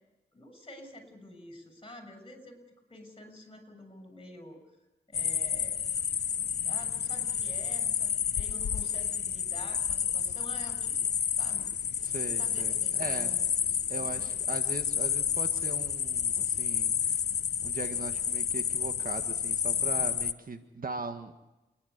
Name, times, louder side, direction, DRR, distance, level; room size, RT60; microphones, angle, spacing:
voice 1, 0.3-2.6 2.9-4.6 5.1-5.8 6.6-11.0 11.3-11.7 12.4-14.3 19.7-20.1, left 1 dB, 30° left, 5 dB, 6.8 m, -49 dB
sound 1, 5.1-20.3, left 8 dB, 65° left, 0.7 m, -30 dB
voice 2, 12.0-13.3 13.9-17.2 17.6-21.3, right 4 dB, 50° right, 8 dB, 1.8 m, -40 dB
29.5 x 11.0 x 8.3 m, 1.0 s
cardioid pair, 55°, 18 cm